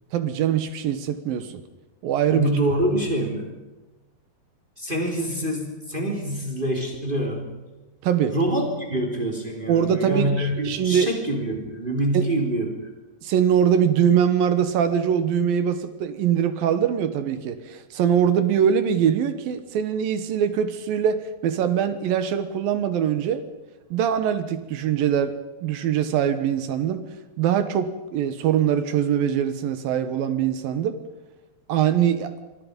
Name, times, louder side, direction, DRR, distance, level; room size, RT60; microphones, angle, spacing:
voice 1, 0.1-1.6 2.0-2.5 8.0-8.4 9.7-11.1 12.1-12.3 13.2-23.5 23.9-25.3 25.6-27.0 27.4-31.0 31.7-32.3, right 8 dB, 70° right, 10 dB, 2.7 m, -22 dB
voice 2, 2.3-3.5 4.8-7.5 8.3-12.8, right 1 dB, 15° right, 2 dB, 3.3 m, -25 dB
27.0 x 24.5 x 5.3 m, 1.1 s
omnidirectional pair, 4.8 m